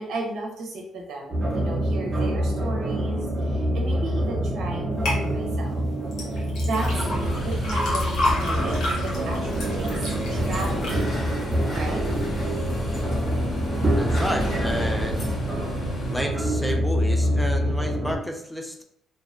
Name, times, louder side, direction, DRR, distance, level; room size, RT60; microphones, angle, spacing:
voice 1, 0.0-5.9 6.3-6.9 7.4-9.9 10.3-12.0, right 2 dB, 75° right, 0 dB, 0.6 m, -34 dB
sound 1, 1.3-18.2, equal, 20° right, 0.7 m, -26 dB
sound 2, 5.1-5.2 6.1-12.2 12.7-13.2 13.7-13.8, left 1 dB, 75° left, 0.8 m, -30 dB
sound 3, 6.8-16.2, left 1 dB, 50° left, 1.2 m, -33 dB
voice 2, 14.0-15.2 16.1-18.8, equal, 5° left, 3 dB, 0.4 m, -30 dB
2.6 x 2.1 x 2.5 m, 0.70 s
cardioid pair, 90°, 0 cm